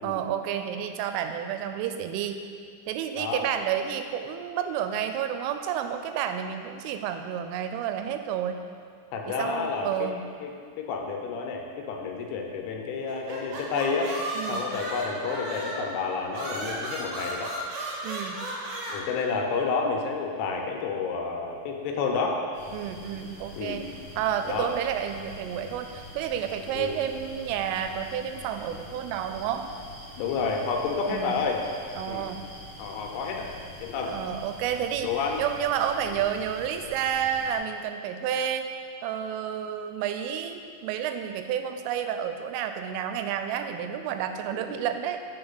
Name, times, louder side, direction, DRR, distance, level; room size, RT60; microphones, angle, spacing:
voice 1, 0.0-2.4 2.9-8.6 9.3-10.3 14.3-14.6 18.0-18.4 22.7-23.9 24.2-29.7 31.1-31.4 31.9-32.4 34.1-35.1 35.4-38.7 39.0-45.2, right 9 dB, 90° right, 7 dB, 3.1 m, -30 dB
voice 2, 9.1-9.9 10.4-10.5 10.8-14.1 14.5-17.5 18.9-22.4 23.6-23.8 24.4-24.7 26.7-27.0 30.2-31.6 32.1-32.3 32.8-33.5 33.8-34.2 35.0-35.4 44.5-44.9, left 5 dB, 80° left, 1 dB, 3.2 m, -30 dB
sound 1, 13.1-15.9 16.3-19.0, right 1 dB, 70° right, 2.4 m, -34 dB
sound 2, 22.5-37.6, left 1 dB, 50° left, 1.7 m, -45 dB
7.7 x 6.4 x 4.0 m, 2.2 s
omnidirectional pair, 5.6 m